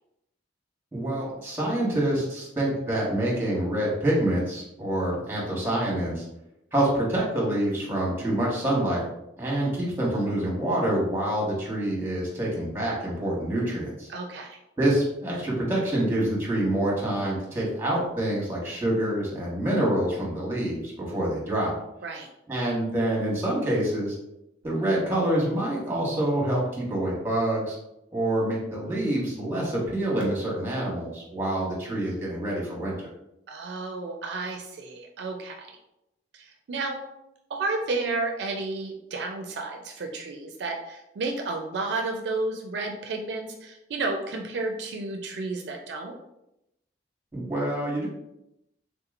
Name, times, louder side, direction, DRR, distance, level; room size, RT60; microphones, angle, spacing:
voice 1, 0.9-6.2 6.7-9.0 9.4-14.1 14.8-21.7 22.5-24.2 24.6-27.7 28.1-33.1 47.3-48.1, right 1 dB, 15° right, -4 dB, 1.1 m, -26 dB
voice 2, 14.1-14.6 22.0-22.3 33.5-35.8 36.3-37.0 37.5-46.2, right 3 dB, 70° right, 3 dB, 0.4 m, -32 dB
3.5 x 2.9 x 2.4 m, 0.85 s
head